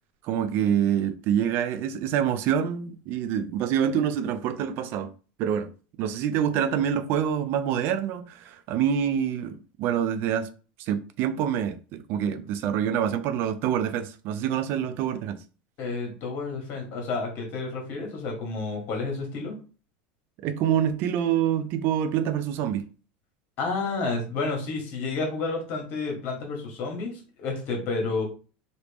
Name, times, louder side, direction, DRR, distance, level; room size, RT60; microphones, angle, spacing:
voice 1, 0.2-5.1 5.4-5.7 6.0-10.5 10.8-15.4 20.4-22.8, right 9 dB, 55° right, 0.4 m, -26 dB
voice 2, 15.8-19.6 23.6-28.2, left 3 dB, 50° left, 1.5 m, -30 dB
3.0 x 2.6 x 3.4 m
supercardioid pair, 130°, 5 cm